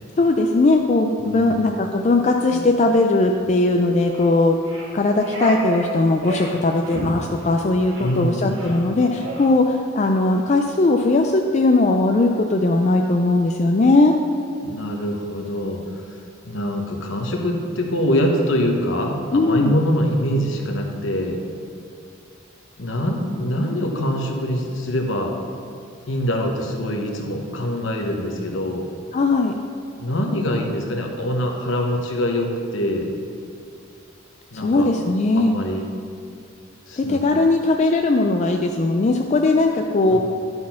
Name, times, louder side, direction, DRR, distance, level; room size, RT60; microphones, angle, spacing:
voice 1, 0.2-4.6 4.9-14.2 19.3-19.8 29.1-29.5 34.5-35.5 37.0-40.2, left 2 dB, 35° left, 3 dB, 0.3 m, -19 dB
voice 2, 1.2-1.5 8.0-8.7 14.6-21.4 22.8-25.3 26.1-28.9 30.0-33.1 34.5-34.9 35.3-35.8 36.9-37.2 40.1-40.2, equal, 70° left, 2 dB, 1.0 m, -24 dB
sound 1, 2.5-2.7 3.2-3.4 4.1-4.3 4.6-5.9 6.2-6.6 6.8-7.1 7.4-7.6 7.9-8.2 8.5-8.8 9.2-9.5, right 1 dB, 65° right, 1.6 m, -31 dB
11.0 x 4.1 x 5.7 m, 2.4 s
head